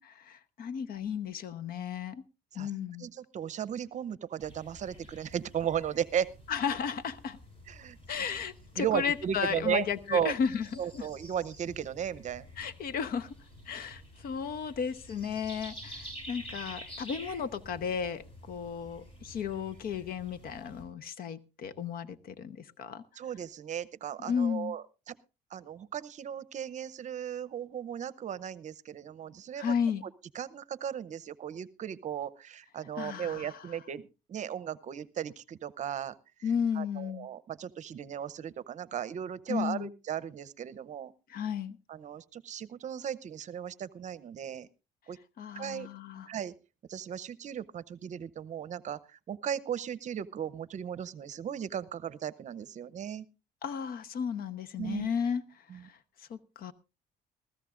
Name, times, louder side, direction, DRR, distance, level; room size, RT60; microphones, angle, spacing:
voice 1, 0.0-2.2 2.5-3.1 6.5-7.4 8.1-10.7 10.9-11.1 12.6-13.3 13.7-23.0 24.2-24.8 29.6-30.0 33.0-33.7 36.4-37.3 39.5-39.9 41.3-41.8 45.4-46.3 53.6-56.7, left 7 dB, 60° left, 0.9 m, -34 dB
voice 2, 3.0-6.3 7.7-8.0 8.8-9.8 10.1-10.3 10.8-12.5 23.2-25.2 25.5-29.7 30.3-34.0 34.3-36.1 36.7-41.1 41.9-44.7 45.1-45.2 45.6-45.9 46.3-46.5 46.9-53.3 54.8-55.1 55.7-55.8, right 9 dB, 45° right, 0.7 m, -36 dB
sound 1, 4.4-20.8, equal, 35° left, 6.5 m, -49 dB
20.5 x 14.5 x 2.5 m
cardioid pair, 110°, 17 cm